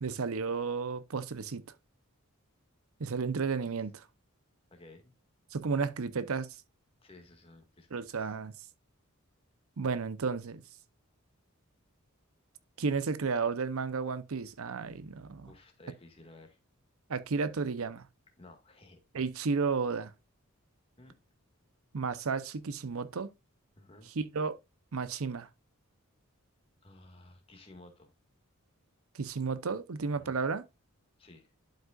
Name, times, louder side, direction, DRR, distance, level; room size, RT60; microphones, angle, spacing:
voice 1, 0.0-1.6 3.0-4.0 5.5-6.6 7.9-8.5 9.8-10.6 12.8-15.5 17.1-18.1 19.1-20.1 21.9-23.3 24.2-24.6 24.9-25.5 29.1-30.6, right 5 dB, 75° right, 0.6 m, -33 dB
voice 2, 4.7-5.1 7.0-8.4 15.4-16.6 18.4-19.0 21.0-21.1 23.8-24.1 26.8-28.1 30.1-30.4 31.2-31.5, left 2 dB, 25° left, 1.8 m, -55 dB
11.5 x 5.3 x 2.4 m
head